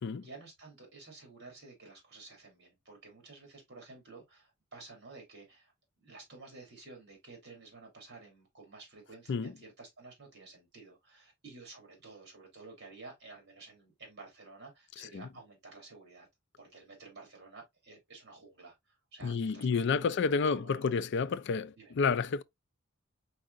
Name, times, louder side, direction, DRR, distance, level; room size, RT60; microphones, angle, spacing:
voice 1, 0.0-16.3 16.6-21.0 21.8-21.9, right 3 dB, 55° right, 2.6 m, -52 dB
voice 2, 19.2-22.4, left 5 dB, 60° left, 0.4 m, -30 dB
4.7 x 4.1 x 2.5 m
head